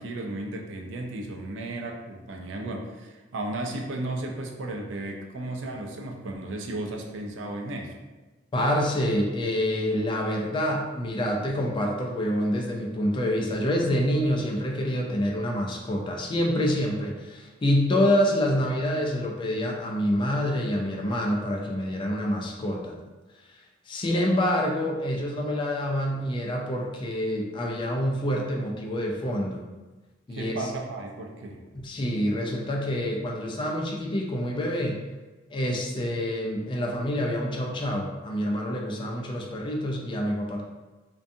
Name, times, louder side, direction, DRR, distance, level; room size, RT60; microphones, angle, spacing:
voice 1, 0.0-7.9 30.3-31.6, right 2 dB, 85° right, 2 dB, 0.4 m, -34 dB
voice 2, 8.5-22.9 23.4-29.7 30.3-30.7 31.7-35.0 35.5-40.6, equal, 25° left, 0 dB, 0.3 m, -27 dB
2.6 x 2.2 x 2.5 m, 1.2 s
head